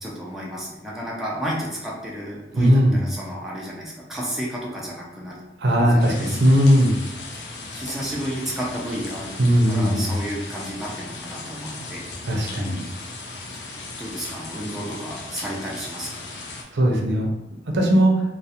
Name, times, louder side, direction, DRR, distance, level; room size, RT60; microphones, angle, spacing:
voice 1, 0.0-5.4 5.8-6.4 7.6-9.3 9.7-12.0 14.0-16.2, equal, ahead, -5 dB, 0.4 m, -32 dB
voice 2, 2.5-3.1 5.6-7.0 9.4-10.1 12.2-12.8 16.7-17.3 17.7-18.1, equal, 70° right, 1 dB, 0.5 m, -18 dB
sound 1, 6.0-16.6, left 3 dB, 65° left, 0.4 m, -37 dB
2.4 x 2.0 x 2.8 m, 0.96 s
head